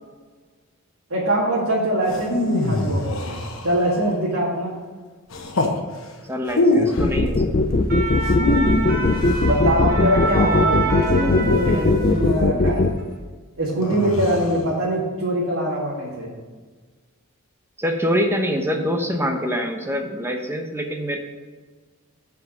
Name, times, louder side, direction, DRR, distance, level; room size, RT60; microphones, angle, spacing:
voice 1, 1.1-3.4 3.6-4.7 9.4-12.9 13.6-16.3, right 1 dB, 70° right, -7 dB, 2.1 m, -23 dB
sound 1, 2.1-4.1 5.3-5.8 6.4-7.1 8.2-9.5 11.0-12.2 13.8-14.6, left 2 dB, 65° left, 1.2 m, -24 dB
voice 2, 6.3-7.5 17.8-21.2, equal, 10° right, 3 dB, 0.9 m, -24 dB
sound 2, 7.0-12.9, left 2 dB, 35° left, 0.5 m, -18 dB
sound 3, 7.6-12.4 12.8-13.0, right 3 dB, 45° right, 1.0 m, -27 dB
7.8 x 5.3 x 6.4 m, 1.4 s
head